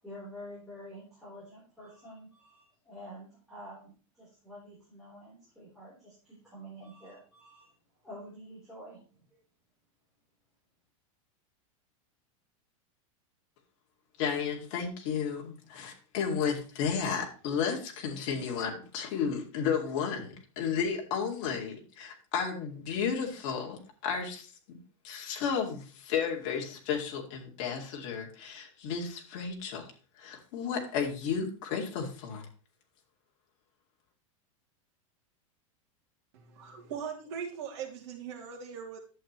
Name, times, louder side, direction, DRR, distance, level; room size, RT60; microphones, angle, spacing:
voice 1, 0.0-7.7 8.0-9.4, equal, ahead, -10 dB, 3.9 m, -48 dB
voice 2, 14.2-24.8 25.0-29.9 30.2-32.5, left 6 dB, 40° left, 0 dB, 2.4 m, -33 dB
voice 3, 36.3-39.0, right 7 dB, 55° right, 1 dB, 2.8 m, -40 dB
11.0 x 7.7 x 3.1 m, 0.37 s
supercardioid pair, 170°, 17 cm